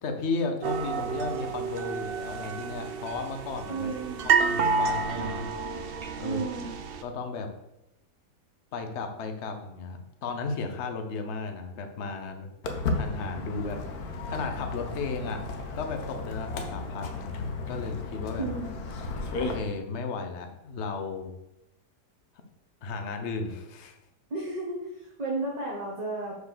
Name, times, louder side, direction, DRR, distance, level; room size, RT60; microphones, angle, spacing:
voice 1, 0.0-3.9 4.2-5.5 6.2-6.4 7.0-7.5 8.7-12.5 12.9-15.4 15.8-18.5 19.4-21.3 22.8-24.0, left 4 dB, 50° left, 5 dB, 1.1 m, -34 dB
sound 1, 0.6-7.0, right 5 dB, 65° right, 0.6 m, -29 dB
voice 2, 3.7-4.2 6.2-6.7 18.4-18.7 24.3-26.3, right 3 dB, 25° right, -3 dB, 1.3 m, -33 dB
Walk footsteps, 12.6-19.6, left 3 dB, 65° left, 1.5 m, -34 dB
6.8 x 4.7 x 6.7 m, 0.87 s
omnidirectional pair, 1.8 m